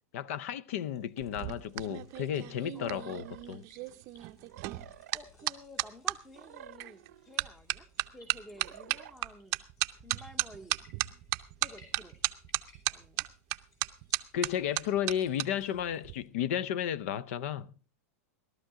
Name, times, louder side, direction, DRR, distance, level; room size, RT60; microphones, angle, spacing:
voice 1, 0.1-3.6 14.3-17.7, left 10 dB, 65° left, 0.6 m, -33 dB
sound 1, 0.7-16.3, left 3 dB, 35° left, 6.5 m, -64 dB
sound 2, 1.2-6.2 6.8-7.1 7.4-15.5 15.7-16.1, right 20 dB, 40° right, 0.6 m, -34 dB
sound 3, 2.9-3.4 4.5-5.2 6.3-7.4 8.6-9.2, right 12 dB, 85° right, 0.7 m, -51 dB
voice 2, 5.1-9.6 10.0-10.8 11.6-12.2 12.9-13.3, equal, ahead, 0.8 m, -52 dB
17.5 x 12.5 x 3.7 m
supercardioid pair, 145°, 8 cm